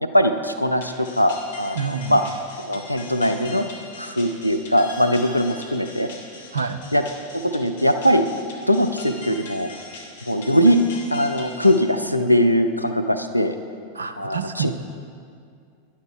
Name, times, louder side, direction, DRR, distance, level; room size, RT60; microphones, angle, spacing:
voice 1, 0.0-2.2 2.6-3.7 4.0-6.1 6.9-7.0 7.3-8.3 8.7-9.7 10.3-10.8 11.1-13.6 14.2-14.7, equal, 90° left, 7 dB, 0.4 m, -20 dB
sound 1, 0.8-11.8, left 3 dB, 60° left, 1.2 m, -41 dB
voice 2, 1.7-2.2 6.5-6.8 13.9-14.7, right 6 dB, 70° right, 9 dB, 0.4 m, -27 dB
10.0 x 9.8 x 3.4 m, 2.3 s
figure-of-eight pair, 90°, 0 cm